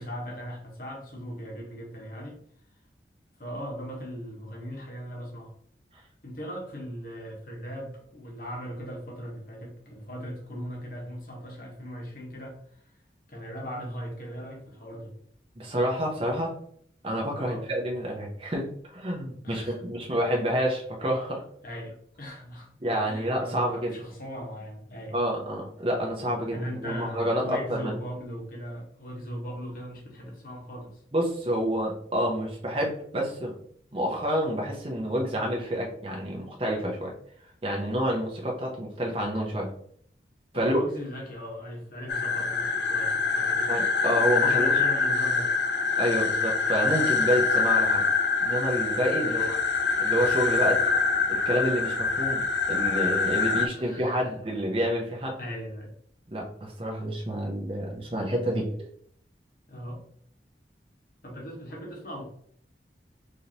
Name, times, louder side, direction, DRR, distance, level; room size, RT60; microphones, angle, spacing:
voice 1, 0.0-2.4 3.4-5.5 6.2-12.8 13.3-15.1 17.4-17.6 19.4-20.1 21.6-22.7 23.0-25.1 26.5-31.0 40.5-43.7 44.4-45.5 49.2-49.5 53.5-54.1 55.4-55.9 59.7-60.0 61.2-62.2, equal, 50° left, -1 dB, 1.1 m, -39 dB
voice 2, 15.6-16.5 17.0-21.4 22.8-23.9 25.1-27.9 31.1-33.5 33.9-37.1 37.6-39.7 40.5-40.8 43.7-44.8 46.0-48.0 48.4-49.6 50.0-50.8 51.3-52.4 52.7-55.3 56.3-58.8, equal, 30° right, -1 dB, 0.7 m, -28 dB
sound 1, 42.1-53.7, left 4 dB, 75° left, 0.4 m, -25 dB
4.9 x 2.7 x 2.8 m, 0.63 s
head